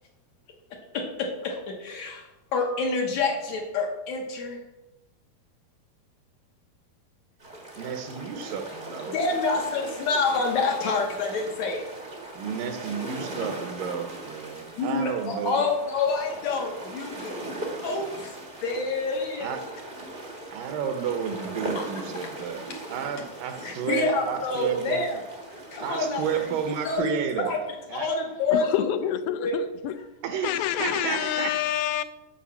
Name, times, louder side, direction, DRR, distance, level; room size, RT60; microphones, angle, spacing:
voice 1, 0.9-2.3 2.5-4.6 9.1-11.8 13.4-13.5 14.8-17.4 17.8-18.3 18.6-19.6 21.8-21.9 22.7-22.8 23.6-25.2 25.7-26.4 26.8-27.6 27.9-28.9 29.4-29.6 30.3-30.5 30.8-30.9, left 4 dB, 65° left, 2 dB, 2.1 m, -28 dB
sound 1, 7.4-26.9, right 2 dB, 35° right, 0.7 m, -39 dB
voice 2, 7.8-9.2 12.4-15.6 19.4-19.6 20.5-25.1 25.8-27.5 27.9-28.1 30.2-31.6, right 8 dB, 75° right, 7 dB, 2.3 m, -31 dB
voice 3, 28.5-30.0 30.4-32.0, left 11 dB, 90° left, 10 dB, 2.6 m, -27 dB
8.7 x 6.6 x 7.0 m, 1.0 s
omnidirectional pair, 4.2 m